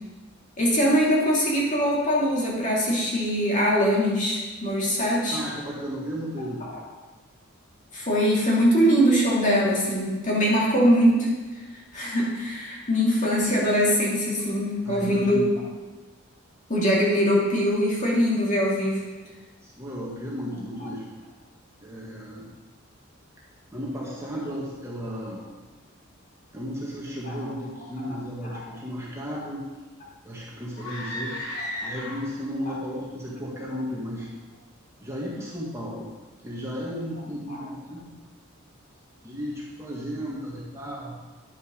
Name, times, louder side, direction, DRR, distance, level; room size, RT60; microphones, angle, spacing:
voice 1, 0.6-5.4 7.9-11.3 11.9-15.4 16.7-19.1 27.2-27.3 28.5-28.6 31.8-31.9 32.7-32.8 37.5-37.6, equal, 35° left, -5 dB, 2.8 m, -22 dB
voice 2, 5.3-6.6 14.8-15.5 19.6-21.2 21.8-22.5 23.7-25.4 26.5-29.6 30.2-31.3 31.8-34.3 35.0-36.1 36.4-38.1 39.2-41.2, equal, 15° right, -5 dB, 1.8 m, -34 dB
sound 1, 30.7-32.5, left 1 dB, 90° left, 4.0 m, -34 dB
10.5 x 6.9 x 6.4 m, 1.3 s
head